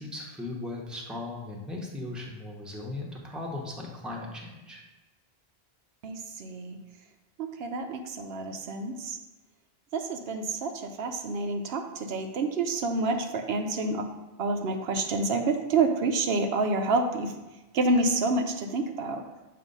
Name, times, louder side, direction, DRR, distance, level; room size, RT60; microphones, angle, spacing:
voice 1, 0.0-4.8, left 2 dB, ahead, -2 dB, 0.8 m, -37 dB
voice 2, 6.0-6.8 7.4-9.2 9.9-14.1 14.4-17.3 17.7-19.2, right 3 dB, 75° right, 5 dB, 0.8 m, -28 dB
7.5 x 2.5 x 5.3 m, 1.1 s
omnidirectional pair, 1.1 m